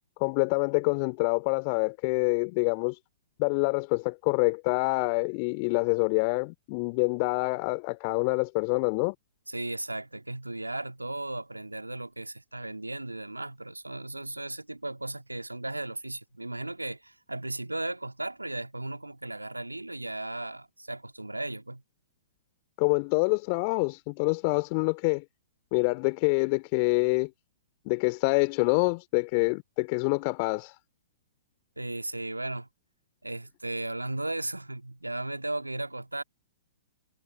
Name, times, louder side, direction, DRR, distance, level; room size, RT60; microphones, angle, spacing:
voice 1, 0.2-3.0 3.4-9.1 22.8-25.2 25.7-27.3 27.9-30.7, left 35 dB, 40° left, 2.8 m, -26 dB
voice 2, 9.5-21.8 31.8-32.7 33.2-36.2, right 2 dB, 85° right, 2.3 m, -36 dB
figure-of-eight pair, 110°, 0 cm